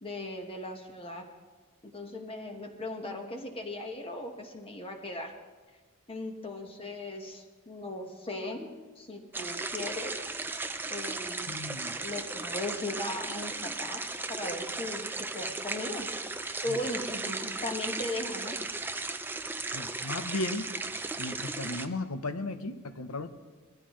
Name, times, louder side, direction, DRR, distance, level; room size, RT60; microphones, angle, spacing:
voice 1, 0.0-1.2 1.8-5.3 6.1-8.7 8.9-10.2 10.9-11.6 12.0-16.1 16.6-18.6, left 1 dB, 25° left, 3 dB, 1.4 m, -38 dB
sound 1, 9.3-21.9, right 3 dB, 10° right, 0.5 m, -36 dB
voice 2, 11.5-12.0 16.7-16.8 19.7-20.7 21.2-23.3, left 2 dB, 75° left, 9 dB, 1.0 m, -35 dB
21.0 x 14.5 x 3.2 m, 1.4 s
head